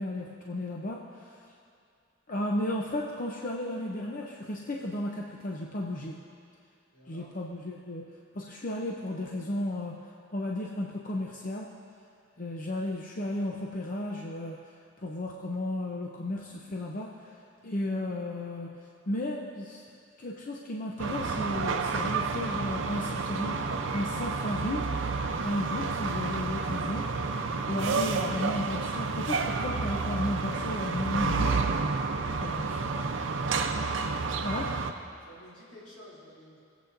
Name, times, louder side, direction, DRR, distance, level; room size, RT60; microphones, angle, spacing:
voice 1, 0.0-1.4 2.3-6.2 7.1-8.1 8.3-11.8 12.4-14.6 15.0-17.3 17.6-18.7 19.1-19.8 20.2-23.6 23.9-25.0 25.4-27.1 27.7-31.6 32.4-32.8 34.4-34.8, left 1 dB, 45° left, -1 dB, 0.7 m, -34 dB
voice 2, 6.9-7.3 32.1-32.6 33.0-33.2 35.3-36.6, equal, 80° left, -7 dB, 3.0 m, -52 dB
sound 1, 21.0-34.9, right 4 dB, 80° right, 0.6 m, -30 dB
20.5 x 8.1 x 2.6 m, 2.4 s
head